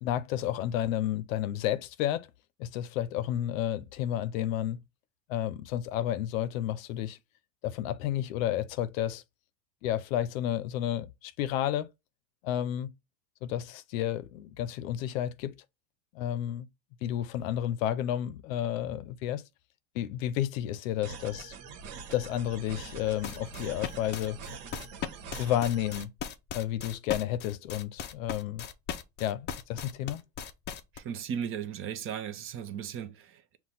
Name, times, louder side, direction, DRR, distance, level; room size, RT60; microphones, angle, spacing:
voice 1, 0.0-2.3 2.6-4.8 5.3-7.2 7.6-9.2 9.8-11.9 12.4-12.9 13.4-15.5 16.1-16.7 17.0-19.4 19.9-21.6 22.1-24.4 25.4-26.1 26.5-28.7 29.2-30.2, left 12 dB, 75° left, 0.6 m, -31 dB
sound 1, 21.0-26.0, right 4 dB, 65° right, 1.3 m, -44 dB
sound 2, 23.2-31.0, left 8 dB, 25° left, 0.4 m, -38 dB
voice 2, 30.9-33.6, right 8 dB, 35° right, 0.6 m, -36 dB
5.8 x 2.3 x 4.0 m
supercardioid pair, 115°, 40 cm